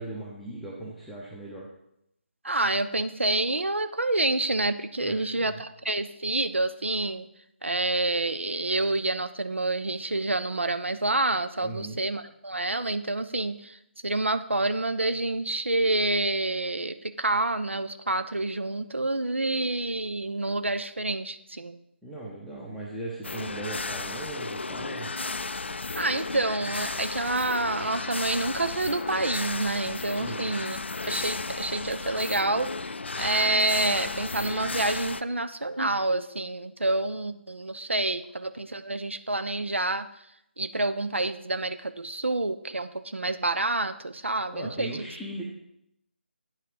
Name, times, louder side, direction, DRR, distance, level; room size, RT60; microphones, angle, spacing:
voice 1, 0.0-1.7 5.0-5.5 11.6-12.0 22.0-25.1 30.2-30.5 44.5-45.4, right 2 dB, ahead, -7 dB, 0.7 m, -38 dB
voice 2, 2.4-7.3 7.6-21.8 25.9-30.8 31.1-32.7 33.2-40.1 40.6-45.0, right 2 dB, 75° right, 11 dB, 0.6 m, -28 dB
sound 1, 23.2-35.2, left 3 dB, 65° left, 0.4 m, -34 dB
9.6 x 5.8 x 4.8 m, 0.77 s
figure-of-eight pair, 150°, 7 cm